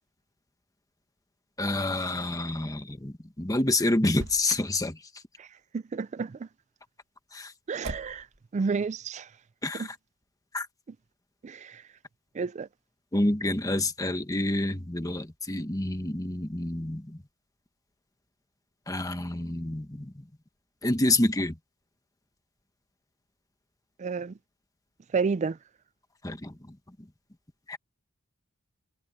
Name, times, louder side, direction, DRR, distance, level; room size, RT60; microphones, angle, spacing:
voice 1, 1.6-5.0 7.3-7.5 9.6-9.9 10.5-10.7 13.1-17.2 18.9-20.2 20.8-21.6 26.2-26.7 27.7-27.8, left 2 dB, 15° left, 1.3 m, -28 dB
Motor vehicle (road), 4.0-4.8 7.8-8.4, right 2 dB, 55° right, 1.6 m, -39 dB
voice 2, 5.7-6.5 7.7-8.3 8.5-9.3 9.7-9.9 11.4-11.8 12.3-12.7 24.0-24.4 25.1-25.6, right 5 dB, 30° right, 0.3 m, -30 dB
head